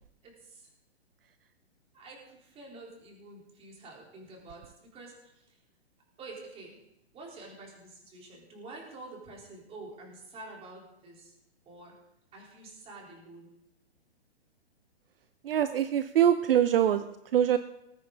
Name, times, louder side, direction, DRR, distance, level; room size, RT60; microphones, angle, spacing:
voice 1, 0.2-0.7 1.9-5.5 6.2-6.8 7.1-11.3 11.7-11.9 12.3-13.5, right 2 dB, 20° right, -2 dB, 3.8 m, -48 dB
voice 2, 15.4-17.0 17.3-17.6, right 10 dB, 60° right, 11 dB, 0.7 m, -23 dB
20.0 x 9.3 x 3.9 m, 0.86 s
hypercardioid pair, 140°, 32 cm